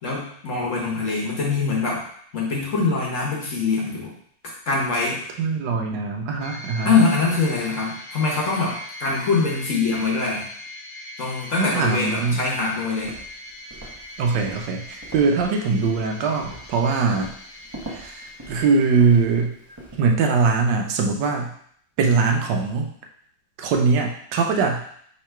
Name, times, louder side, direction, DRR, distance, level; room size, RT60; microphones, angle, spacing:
voice 1, 0.0-2.0 2.3-4.1 4.7-5.2 6.8-10.5 11.2-13.1, left 4 dB, 50° left, -4 dB, 1.2 m, -23 dB
voice 2, 5.4-6.9 11.6-12.4 14.2-17.3 17.9-19.5 20.0-21.5 22.0-22.9 23.6-24.8, right 4 dB, 85° right, 3 dB, 1.3 m, -21 dB
sound 1, 6.4-19.2, left 1 dB, 80° left, 1.3 m, -41 dB
Walk footsteps, 12.9-20.0, right 1 dB, 25° right, 0.5 m, -42 dB
3.6 x 2.9 x 4.4 m, 0.63 s
omnidirectional pair, 1.9 m